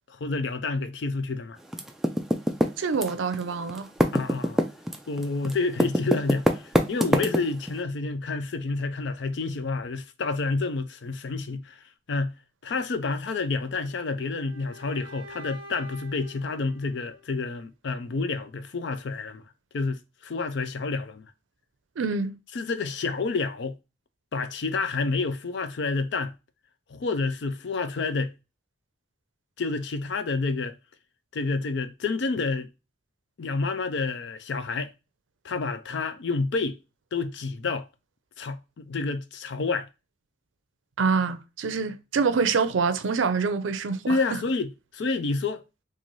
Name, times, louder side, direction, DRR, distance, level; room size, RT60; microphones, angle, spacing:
voice 1, 0.1-1.6 4.1-4.6 5.1-12.3 12.6-19.4 19.7-21.3 22.5-23.8 24.3-26.3 26.9-28.3 29.6-30.8 31.3-32.7 33.4-34.9 35.4-36.8 37.1-37.9 38.4-39.9 44.1-45.6, left 3 dB, 65° left, 0.4 m, -29 dB
Typing, 1.7-3.4 3.7-7.7, equal, ahead, 0.3 m, -24 dB
voice 2, 2.8-3.9 22.0-22.4 41.0-44.0 44.3-44.4, right 5 dB, 85° right, 0.5 m, -25 dB
sound 1, 13.5-17.5, left 1 dB, 25° right, 1.1 m, -47 dB
3.9 x 2.5 x 3.1 m
head